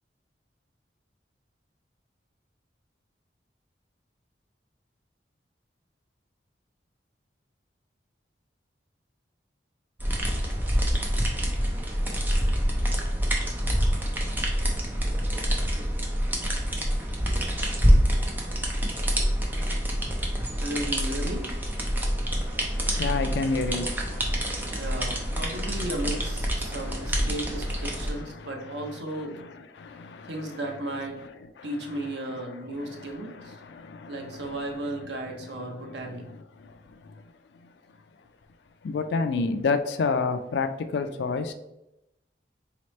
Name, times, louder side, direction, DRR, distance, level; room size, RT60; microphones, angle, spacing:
sound 1, 10.0-28.1, equal, 10° right, 0.5 m, -26 dB
voice 1, 20.6-21.5 24.8-29.4 30.3-31.2 31.6-33.6 34.1-36.3, right 1 dB, 75° right, 0.7 m, -35 dB
voice 2, 22.7-25.9 26.6-27.3 27.9-29.5 29.7-30.6 31.6-31.7 32.7-34.6 35.8-36.0 36.3-36.7 38.8-41.5, left 4 dB, 75° left, 0.4 m, -31 dB
4.2 x 3.0 x 3.1 m
head